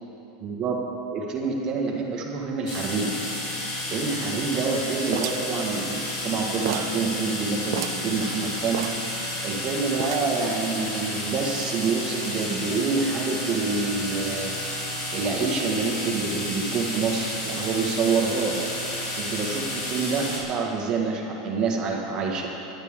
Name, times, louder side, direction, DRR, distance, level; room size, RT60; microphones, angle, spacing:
voice 1, 0.4-0.8 1.1-3.1 3.9-8.9 9.4-14.5 15.1-18.6 19.2-22.5, right 4 dB, 30° right, 0 dB, 1.8 m, -27 dB
sound 1, 2.7-20.4, left 1 dB, 50° left, 3.8 m, -31 dB
sound 2, 5.1-6.3 6.7-7.0 7.3-7.4 7.7-8.1 8.7-9.6 10.0-10.5, right 12 dB, 65° right, 0.5 m, -32 dB
19.0 x 11.5 x 3.8 m, 2.9 s
supercardioid pair, 155°, 3 cm